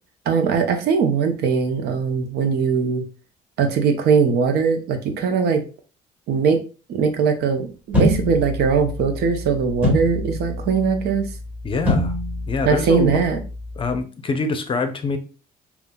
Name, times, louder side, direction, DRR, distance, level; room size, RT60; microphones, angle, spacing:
voice 1, 0.3-3.0 3.6-5.6 6.3-6.6 6.9-11.3 12.6-13.4, right 5 dB, 70° right, 6 dB, 0.8 m, -20 dB
sound 1, 7.9-14.0, left 1 dB, 10° right, 1.9 m, -26 dB
voice 2, 11.6-12.1 12.5-13.2 13.8-15.2, left 4 dB, 30° left, 8 dB, 0.6 m, -25 dB
5.3 x 2.4 x 2.2 m, 0.33 s
cardioid pair, 110°, 17 cm